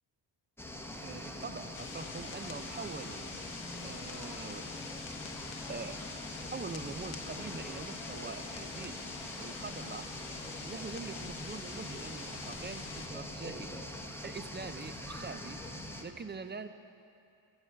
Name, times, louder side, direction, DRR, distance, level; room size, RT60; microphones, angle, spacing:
sound 1, 0.6-16.0, left 1 dB, 5° left, 0.8 m, -43 dB
voice 1, 1.0-3.2 3.8-4.7 5.7-6.0 6.4-9.1 9.4-10.1 10.6-13.9 14.2-15.6 16.0-16.7, right 4 dB, 25° right, 10 dB, 0.5 m, -43 dB
sound 2, 1.7-13.1, left 6 dB, 85° left, 1.0 m, -47 dB
15.0 x 6.6 x 5.6 m, 2.5 s
cardioid pair, 85°, 48 cm